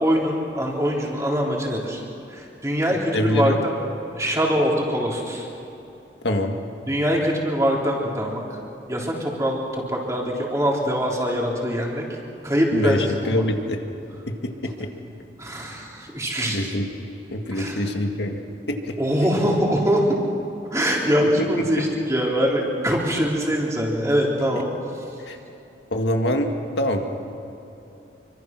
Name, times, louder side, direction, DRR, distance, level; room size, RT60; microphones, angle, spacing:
voice 1, 0.0-2.0 2.3-3.8 4.1-5.5 6.9-8.4 8.9-12.0 12.4-13.5 15.4-16.6 17.5-17.8 19.0-20.1 20.7-24.7, equal, 15° right, -2 dB, 3.7 m, -23 dB
voice 2, 3.1-3.6 6.2-6.6 12.7-13.8 14.3-14.9 16.5-17.0 17.3-18.4 18.7-19.0 21.4-21.8 24.6-24.7 25.3-25.4 25.9-27.1, left 1 dB, 75° left, 3 dB, 2.1 m, -25 dB
26.5 x 24.5 x 6.1 m, 2.8 s
head